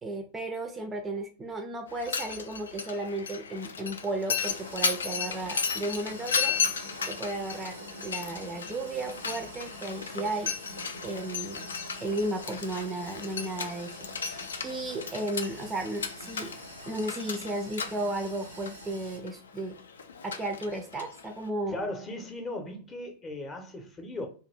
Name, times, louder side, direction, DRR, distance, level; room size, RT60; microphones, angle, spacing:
voice 1, 0.0-6.6 7.1-11.6 12.0-16.5 16.9-19.8 20.2-21.8, right 2 dB, 15° right, 0.4 m, -34 dB
Mechanisms, 1.9-21.5, left 6 dB, 70° left, 0.3 m, -35 dB
sound 1, 4.4-19.2, right 1 dB, 90° left, 0.9 m, -46 dB
voice 2, 21.7-24.3, left 2 dB, 20° left, 0.7 m, -37 dB
2.5 x 2.3 x 3.2 m
figure-of-eight pair, 90°, 0 cm